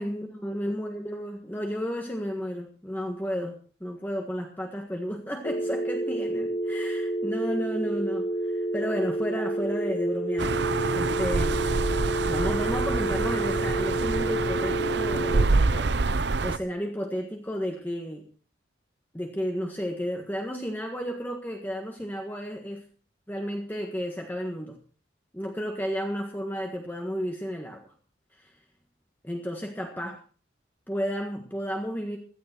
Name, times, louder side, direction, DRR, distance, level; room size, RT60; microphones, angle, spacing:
voice 1, 0.0-10.5 10.9-11.6 12.3-16.0 16.4-18.3 19.1-22.8 23.3-24.8 25.3-27.9 28.3-28.5 29.2-30.2 30.9-32.2, equal, 10° left, 2 dB, 1.5 m, -32 dB
sound 1, 5.4-15.4, right 1 dB, 45° left, 1.3 m, -29 dB
sound 2, 10.4-16.6, right 3 dB, 60° right, 0.7 m, -26 dB
16.0 x 12.5 x 4.5 m, 0.39 s
head